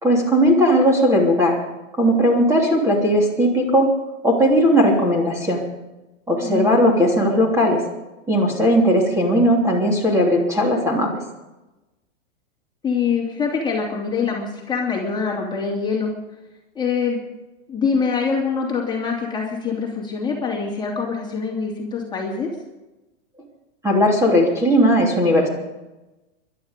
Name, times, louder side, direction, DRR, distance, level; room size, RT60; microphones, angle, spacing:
voice 1, 0.0-1.6 2.0-3.9 4.2-5.6 6.3-7.8 8.3-11.2 23.8-25.5, equal, 10° right, -1 dB, 3.2 m, -17 dB
voice 2, 6.4-6.9 12.8-16.1 16.7-17.2 17.7-22.5, left 5 dB, 10° left, -2 dB, 3.0 m, -24 dB
21.5 x 12.0 x 5.3 m, 1.0 s
supercardioid pair, 150°, 37 cm